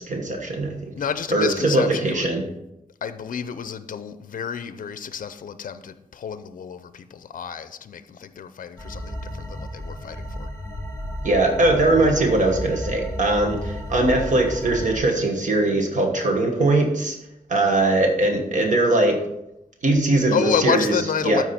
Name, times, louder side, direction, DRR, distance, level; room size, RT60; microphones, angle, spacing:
voice 1, 0.1-0.9 1.3-2.4 11.2-17.2 17.5-19.2 19.8-21.4, right 2 dB, 60° right, 1.3 m, -21 dB
voice 2, 1.0-2.3 3.0-10.5 20.3-21.4, left 7 dB, 65° left, 0.5 m, -29 dB
sound 1, 8.8-15.0, equal, 20° left, 1.4 m, -33 dB
13.0 x 4.7 x 4.2 m
wide cardioid pair, 160°, 15 cm